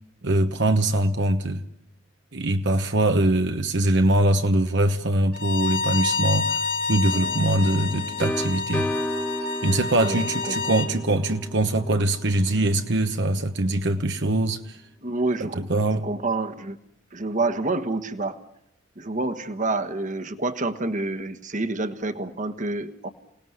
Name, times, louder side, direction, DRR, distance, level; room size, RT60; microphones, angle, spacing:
voice 1, 0.2-1.6 2.3-8.9 9.6-14.8 15.4-16.1, right 1 dB, 65° right, 1.2 m, -23 dB
Bowed string instrument, 5.3-10.9, left 4 dB, 50° left, 2.4 m, -29 dB
sound 1, 7.1-12.8, equal, 10° left, 1.5 m, -33 dB
voice 2, 10.0-10.8 15.0-15.7 16.0-16.8 17.1-18.4 19.0-23.1, right 2 dB, 40° right, 1.4 m, -28 dB
28.5 x 18.5 x 9.5 m
head